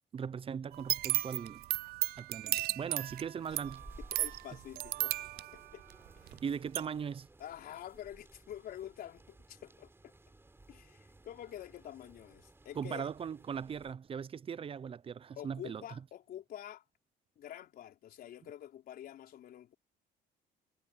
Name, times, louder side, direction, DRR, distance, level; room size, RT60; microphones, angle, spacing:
voice 1, 0.0-1.6 2.2-3.8 6.4-7.3 12.8-15.8, right 7 dB, 35° right, 0.7 m, -39 dB
sound 1, 0.7-6.4 6.7-6.8, right 17 dB, 65° right, 0.4 m, -35 dB
sound 2, 3.5-13.9, right 2 dB, 15° right, 3.8 m, -58 dB
voice 2, 4.0-5.2 5.5-5.8 6.2-6.4 7.4-10.1 10.7-13.1 15.3-16.9 17.4-19.7, left 11 dB, 65° left, 4.3 m, -47 dB
cardioid pair, 110°, 17 cm